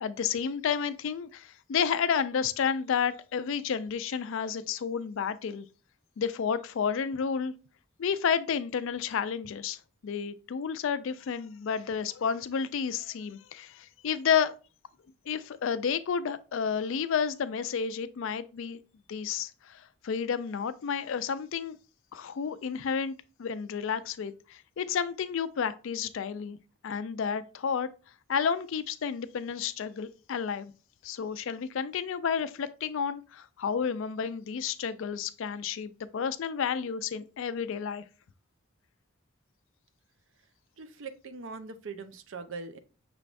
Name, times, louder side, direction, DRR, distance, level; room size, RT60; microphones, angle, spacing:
voice 1, 0.0-5.7 6.2-7.5 8.0-14.5 15.3-18.8 19.1-21.8 22.1-26.6 26.8-27.9 28.3-30.7 31.0-38.0, left 7 dB, 60° left, 0.3 m, -31 dB
voice 2, 40.8-42.8, right 4 dB, 60° right, 0.5 m, -41 dB
6.0 x 3.3 x 2.5 m
head